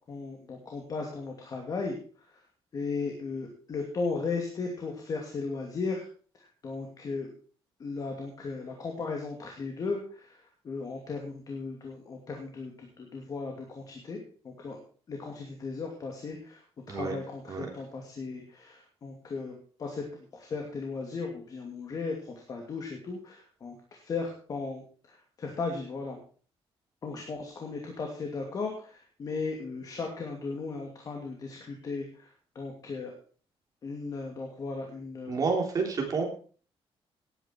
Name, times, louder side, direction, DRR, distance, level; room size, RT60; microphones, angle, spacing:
voice 1, 0.1-2.0 2.3-2.4 2.7-6.0 6.6-7.3 7.8-14.2 14.4-14.8 15.1-16.6 16.9-26.2 27.0-33.1 33.8-35.4, left 4 dB, 40° left, 1 dB, 2.5 m, -36 dB
voice 2, 35.3-36.2, right 4 dB, 35° right, 2 dB, 3.4 m, -29 dB
17.5 x 9.9 x 4.5 m, 0.43 s
cardioid pair, 170°, 10 cm